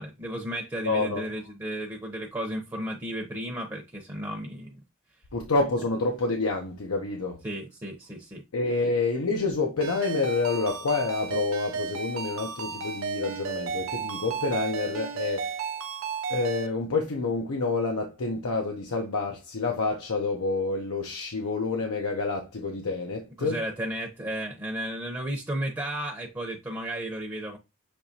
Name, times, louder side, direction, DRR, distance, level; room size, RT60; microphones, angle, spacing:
voice 1, 0.0-4.8 7.4-8.4 23.4-27.6, right 1 dB, 15° right, 0.7 m, -33 dB
voice 2, 0.8-1.2 5.3-7.4 8.5-15.5 16.3-23.6, left 3 dB, 85° left, 0.7 m, -28 dB
Ringtone, 9.8-16.7, right 5 dB, 70° right, 0.7 m, -33 dB
6.3 x 2.9 x 2.7 m
head